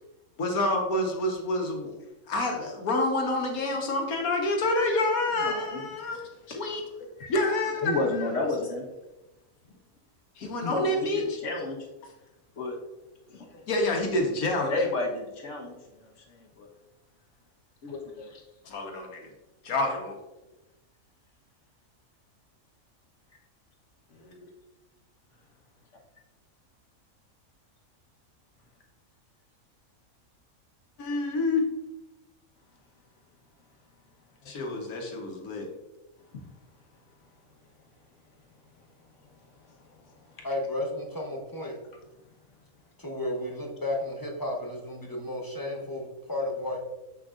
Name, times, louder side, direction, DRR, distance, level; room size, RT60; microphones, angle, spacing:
voice 1, 0.4-2.0 2.3-6.8 7.3-8.3 10.4-11.4 13.7-14.7 18.7-19.3 19.6-20.2 31.0-31.7 34.5-35.7, left 2 dB, 90° left, 2 dB, 1.6 m, -28 dB
voice 2, 5.4-5.8 7.2-7.3 7.8-8.8 10.6-11.9 12.6-12.8 13.3-13.6 14.7-16.7 17.8-18.4 24.1-24.3 36.3-36.4, left 2 dB, 60° left, 0 dB, 1.5 m, -32 dB
voice 3, 40.4-41.8 43.0-46.8, left 1 dB, 20° left, 0 dB, 0.8 m, -33 dB
7.4 x 6.2 x 2.5 m, 1.0 s
omnidirectional pair, 1.5 m